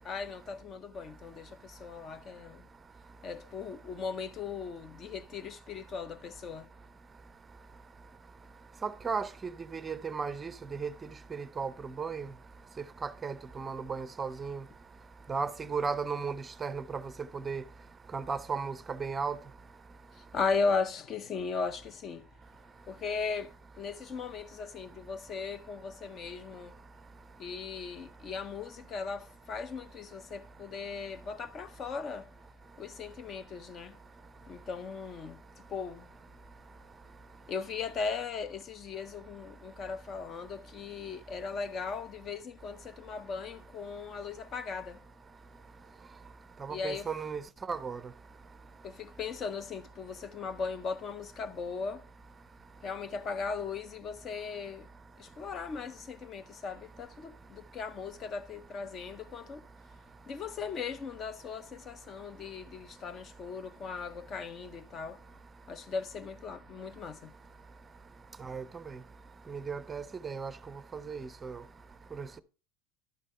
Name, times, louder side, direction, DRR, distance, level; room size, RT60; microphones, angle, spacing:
voice 1, 0.0-2.7 3.2-6.7 20.2-22.3 22.9-26.8 27.4-32.3 32.8-34.0 34.5-36.2 37.5-45.0 46.7-47.1 48.8-52.1 52.8-54.9 55.2-59.6 60.3-65.2 65.7-67.3, left 5 dB, 35° left, 0.6 m, -38 dB
voice 2, 8.8-9.3 9.7-10.9 11.3-12.3 13.0-14.6 15.3-17.0 17.3-17.6 18.1-19.4 46.6-47.4 47.7-48.0 68.4-69.0 69.5-70.5 70.9-71.6 72.2-72.3, right 5 dB, 20° right, 0.5 m, -35 dB
12.0 x 5.4 x 4.2 m
supercardioid pair, 120°, 0 cm